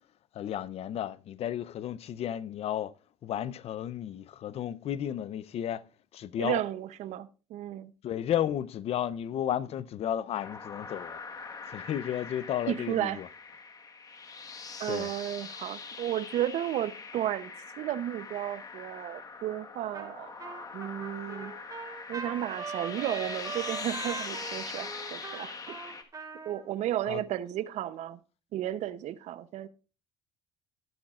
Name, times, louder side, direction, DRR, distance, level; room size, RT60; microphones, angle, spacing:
voice 1, 0.3-2.9 3.2-5.8 6.1-6.6 8.0-11.2 11.7-13.3 14.9-15.1 27.1-27.2, left 10 dB, 55° left, 0.6 m, -33 dB
voice 2, 6.4-7.9 12.7-13.2 14.8-20.4 20.7-21.5 22.1-25.6 25.9-26.0 26.4-28.2 28.5-29.7, right 12 dB, 65° right, 0.7 m, -33 dB
sound 1, 10.3-26.0, left 4 dB, 30° left, 1.4 m, -42 dB
Trumpet, 19.9-20.1 20.4-26.6, right 4 dB, 30° right, 3.3 m, -41 dB
19.0 x 8.7 x 2.4 m
cardioid pair, 115°, 13 cm